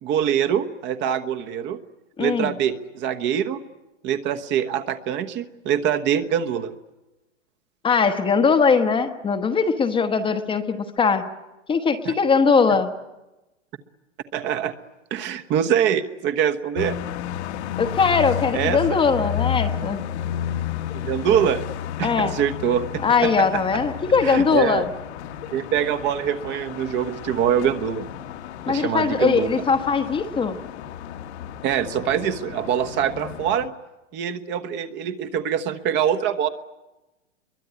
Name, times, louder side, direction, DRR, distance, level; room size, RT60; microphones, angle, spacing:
voice 1, 0.0-1.8 2.2-3.6 4.0-6.7 12.0-12.1 14.3-14.7 15.1-16.9 18.5-19.0 20.9-21.6 22.0-23.8 24.2-24.9 25.5-28.1 28.7-29.6 31.6-33.7 34.1-36.5, right 9 dB, 30° right, 9 dB, 1.2 m, -24 dB
voice 2, 2.2-2.5 7.8-11.2 11.7-12.9 17.8-20.0 22.0-22.4 23.0-24.9 28.7-30.6, left 5 dB, 15° left, 7 dB, 1.1 m, -20 dB
sound 1, 16.8-33.7, left 10 dB, 60° left, 1.7 m, -32 dB
25.5 x 23.0 x 9.6 m, 1.0 s
hypercardioid pair, 140°, 37 cm